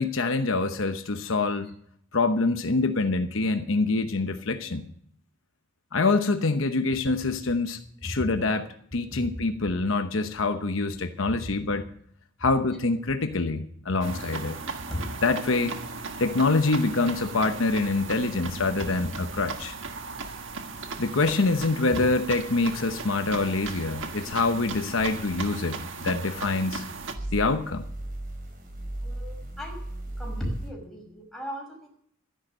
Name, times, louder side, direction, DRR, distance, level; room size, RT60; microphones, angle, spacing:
voice 1, 0.0-1.7 2.1-4.9 5.9-8.7 8.9-11.8 12.4-14.6 15.2-15.8 16.2-19.8 21.0-26.8 27.3-27.8, left 3 dB, 75° left, 8 dB, 1.0 m, -25 dB
sound 1, 14.0-27.2, right 4 dB, 65° right, 1.5 m, -37 dB
voice 2, 18.8-19.1 21.9-22.0 29.0-29.7 30.2-31.9, equal, ahead, -1 dB, 5.4 m, -36 dB
sound 2, 24.2-26.5 27.1-30.7, right 1 dB, 45° right, 3.8 m, -37 dB
13.5 x 10.5 x 6.5 m, 0.65 s
head